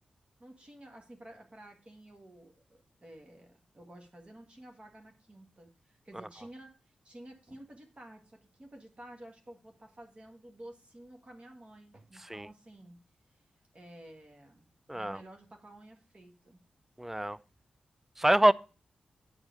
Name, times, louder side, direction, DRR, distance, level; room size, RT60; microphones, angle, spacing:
voice 1, 0.4-13.0 13.7-16.6, right 1 dB, 40° right, 1.8 m, -52 dB
voice 2, 14.9-15.2 17.0-17.4 18.2-18.5, right 1 dB, 10° right, 0.4 m, -25 dB
8.6 x 4.7 x 5.1 m
cardioid pair, 45°, 3 cm